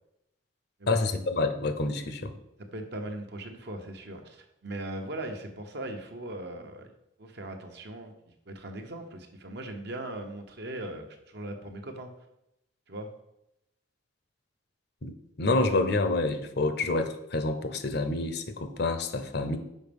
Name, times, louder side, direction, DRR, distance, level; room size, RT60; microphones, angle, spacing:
voice 1, 0.9-2.3 15.0-15.1 15.4-19.6, left 2 dB, 55° left, 8 dB, 0.8 m, -28 dB
voice 2, 2.6-6.9 7.2-8.1 8.5-12.1 12.9-13.1, right 1 dB, 60° right, 4 dB, 1.0 m, -39 dB
6.5 x 5.1 x 5.3 m, 0.84 s
head